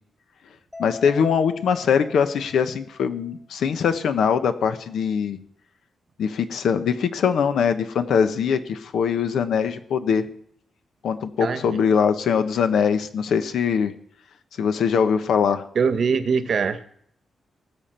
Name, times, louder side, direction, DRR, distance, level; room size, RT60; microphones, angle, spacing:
Mallet percussion, 0.7-3.2, left 5 dB, ahead, 0.9 m, -41 dB
voice 1, 0.8-5.4 6.2-10.3 11.0-13.9 14.6-15.6, left 7 dB, 85° left, 9 dB, 1.1 m, -22 dB
voice 2, 11.4-11.8 15.7-17.0, right 5 dB, 55° right, 11 dB, 1.0 m, -23 dB
19.5 x 7.2 x 4.5 m, 0.66 s
wide cardioid pair, 120°, 0 cm